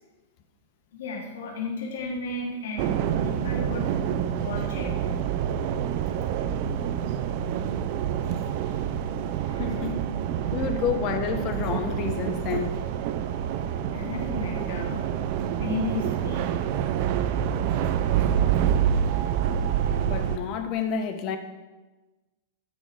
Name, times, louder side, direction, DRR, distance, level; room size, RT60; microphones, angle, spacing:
voice 1, 0.9-3.9 4.4-5.1 8.4-8.8 9.4-9.8 13.9-15.0 15.6-16.6, left 3 dB, 80° left, 3.6 m, -34 dB
sound 1, 2.8-20.4, right 9 dB, 45° right, 0.8 m, -27 dB
voice 2, 9.6-10.0 10.5-12.7 20.0-21.4, left 7 dB, 35° left, 1.2 m, -29 dB
15.0 x 7.5 x 5.1 m
supercardioid pair, 160°, 0 cm